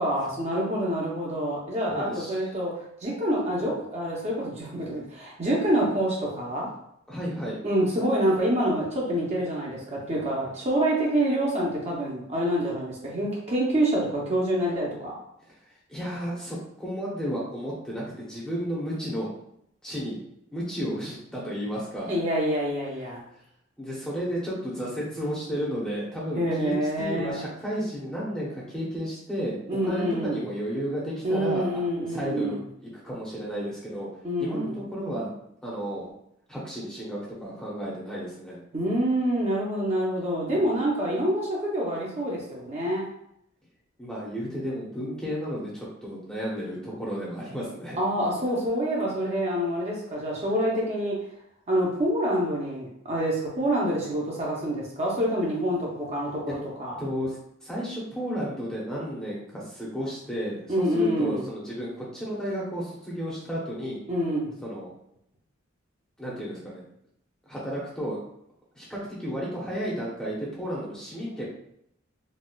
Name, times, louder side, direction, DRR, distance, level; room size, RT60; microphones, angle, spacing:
voice 1, 0.0-6.7 7.6-15.2 22.1-23.2 26.3-27.4 29.7-30.4 31.2-32.6 34.2-34.8 38.7-43.1 48.0-51.2 51.7-57.0 60.7-61.5 64.1-64.5, right 1 dB, 30° right, -4 dB, 0.7 m, -27 dB
voice 2, 1.9-2.4 7.1-7.6 15.9-19.3 19.8-20.2 20.5-22.1 23.8-29.6 29.8-31.8 32.1-34.1 34.4-35.3 35.6-36.1 36.5-38.6 40.5-40.8 44.0-48.0 56.5-56.6 57.0-64.0 64.6-64.9 66.2-66.8 67.5-68.2 68.7-71.4, equal, 5° left, -6 dB, 0.8 m, -33 dB
4.1 x 2.3 x 2.3 m, 0.74 s
head